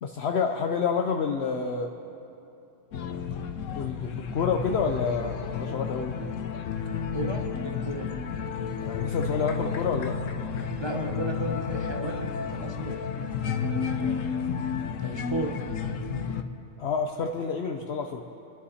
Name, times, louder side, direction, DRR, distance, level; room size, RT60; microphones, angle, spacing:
voice 1, 0.0-1.9 3.7-6.1 8.8-10.1 16.8-18.2, left 5 dB, 60° left, 3 dB, 1.0 m, -28 dB
sound 1, 2.9-16.4, left 6 dB, 85° left, 1.1 m, -31 dB
voice 2, 7.1-8.2 10.8-13.0 15.0-15.6, right 1 dB, 25° right, 2 dB, 1.0 m, -34 dB
28.5 x 11.5 x 4.2 m, 2.8 s
omnidirectional pair, 1.3 m